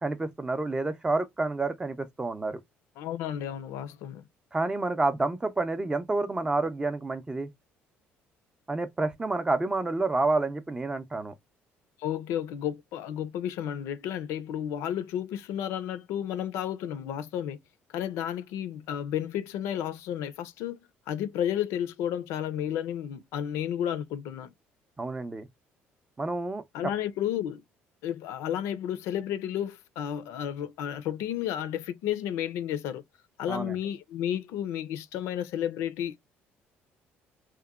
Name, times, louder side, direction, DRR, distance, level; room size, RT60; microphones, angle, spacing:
voice 1, 0.0-2.6 4.5-7.5 8.7-11.3 25.0-25.5 26.2-26.6 33.5-33.7, right 2 dB, 15° right, 0.4 m, -29 dB
voice 2, 3.0-4.3 12.0-17.6 17.9-20.8 21.1-24.5 26.7-27.6 28.0-33.0 33.4-36.2, left 10 dB, 80° left, 0.4 m, -32 dB
2.9 x 2.1 x 2.2 m
cardioid pair, 95°, 5 cm